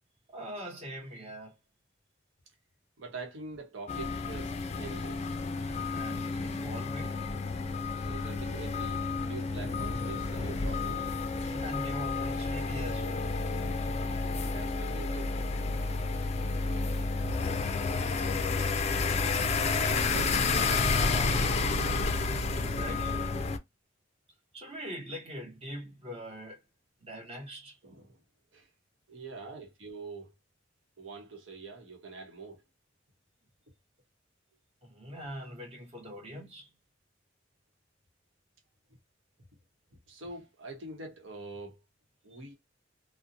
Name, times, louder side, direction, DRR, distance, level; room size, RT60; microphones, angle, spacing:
voice 1, 0.3-1.6 5.7-7.2 11.4-13.3 22.5-23.4 24.5-26.6 27.0-27.8 29.4-29.6 34.8-36.7 42.3-42.4, equal, 35° right, 1.0 m, -43 dB
voice 2, 3.0-5.3 8.0-11.1 14.1-15.4 19.8-22.1 27.8-28.2 28.5-28.7 29.1-30.3 31.0-32.6 40.1-41.8 42.2-42.5, right 3 dB, 90° right, 0.8 m, -45 dB
sound 1, 3.9-23.6, left 4 dB, 35° left, 0.3 m, -30 dB
2.5 x 2.0 x 2.6 m
head